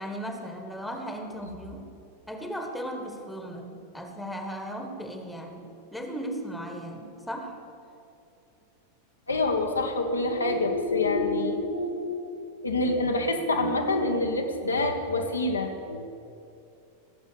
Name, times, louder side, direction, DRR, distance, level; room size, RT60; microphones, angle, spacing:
voice 1, 0.0-1.9 2.3-7.6, equal, 5° left, 4 dB, 1.5 m, -36 dB
voice 2, 9.3-12.4 12.6-16.1, left 2 dB, 75° left, 2 dB, 1.2 m, -26 dB
16.5 x 7.4 x 6.9 m, 2.6 s
figure-of-eight pair, 90°, 0 cm